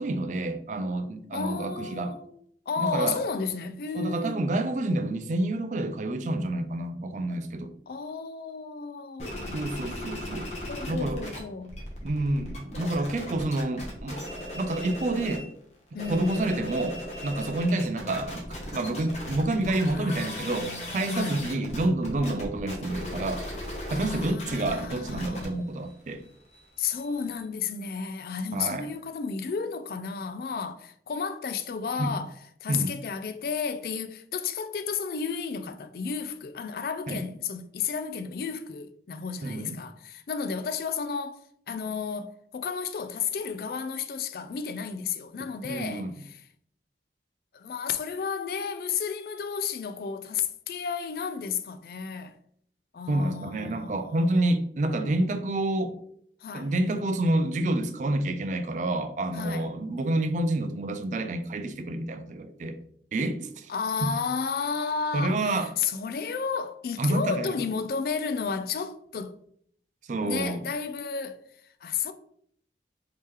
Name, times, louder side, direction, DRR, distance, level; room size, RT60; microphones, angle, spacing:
voice 1, 0.0-2.1 2.8-3.2 3.9-7.7 9.5-10.5 10.9-11.2 12.0-15.5 16.1-23.4 23.9-26.2 28.5-28.9 32.0-32.2 32.7-33.0 37.1-37.2 39.4-39.9 45.6-46.1 53.1-56.0 56.5-62.8 63.1-63.7 64.0-64.1 65.1-65.7 67.0-67.5 70.1-70.6, right 1 dB, 45° right, 0.3 m, -28 dB
voice 2, 1.3-2.4 2.7-4.4 7.9-9.7 10.7-11.8 15.9-16.5 19.8-21.5 23.9-25.5 26.8-32.3 32.6-46.1 47.5-52.4 52.9-54.2 56.4-56.7 59.3-59.7 63.7-69.3 70.2-71.4 71.8-72.1, left 5 dB, 55° left, 0.3 m, -32 dB
sound 1, 9.2-11.4 11.6-15.5 15.9-27.4, left 1 dB, 40° left, 0.9 m, -38 dB
3.2 x 2.8 x 3.5 m
head